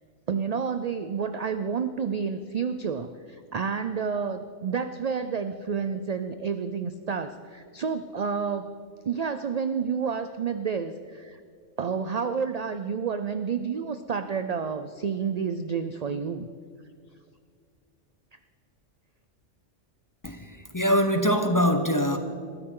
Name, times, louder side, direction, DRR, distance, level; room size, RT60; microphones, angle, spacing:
voice 1, 0.3-8.7 9.0-11.4 11.8-16.5, right 6 dB, 60° right, 10 dB, 0.4 m, -30 dB
voice 2, 20.2-22.2, equal, 20° left, 7 dB, 0.7 m, -23 dB
21.5 x 13.5 x 3.8 m, 2.1 s
omnidirectional pair, 1.3 m